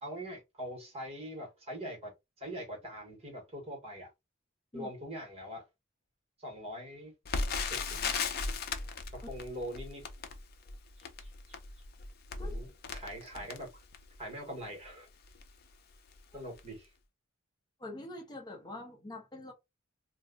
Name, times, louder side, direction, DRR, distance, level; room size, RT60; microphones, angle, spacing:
voice 1, 0.0-2.1 2.4-4.1 4.7-5.7 6.4-7.1 7.7-8.0 9.1-10.0 11.2-11.6 12.4-13.7 14.2-15.1 16.3-16.9, equal, 30° right, 1.4 m, -43 dB
Crackle, 7.3-14.2 14.8-14.9 15.2-15.5 16.1-16.3 16.6-16.7, left 4 dB, 50° left, 0.5 m, -37 dB
voice 2, 17.8-19.5, left 1 dB, 20° left, 0.8 m, -45 dB
2.5 x 2.2 x 3.7 m
head